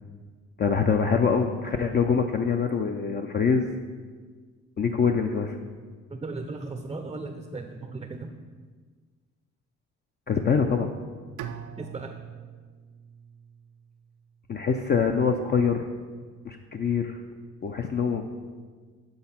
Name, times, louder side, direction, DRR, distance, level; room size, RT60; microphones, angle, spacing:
voice 1, 0.6-3.7 4.8-5.6 10.3-10.9 14.5-15.9 16.4-17.2 17.6-18.3, left 6 dB, 35° left, 4 dB, 0.4 m, -24 dB
voice 2, 6.1-8.4 11.8-12.2, right 3 dB, 15° right, 5 dB, 0.5 m, -36 dB
Bowed string instrument, 11.4-14.4, right 9 dB, 90° right, 0.5 m, -42 dB
7.9 x 3.7 x 5.6 m, 1.5 s
cardioid pair, 90°, 30 cm